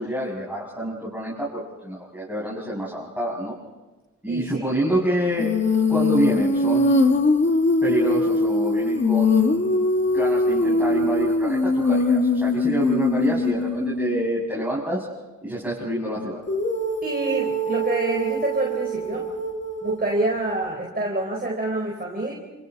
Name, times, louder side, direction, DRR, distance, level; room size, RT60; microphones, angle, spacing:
voice 1, 0.0-3.5 4.2-5.5 5.9-7.2 7.8-9.8 10.1-15.1 15.4-16.4, right 1 dB, 5° right, -6 dB, 7.2 m, -27 dB
voice 2, 4.3-4.7 17.0-19.3 19.8-22.3, right 2 dB, 30° right, -1 dB, 4.1 m, -27 dB
Female singing, 5.4-14.3 16.5-20.7, left 2 dB, 35° left, 1.9 m, -22 dB
29.0 x 27.5 x 4.2 m, 1.2 s
cardioid pair, 60°, 31 cm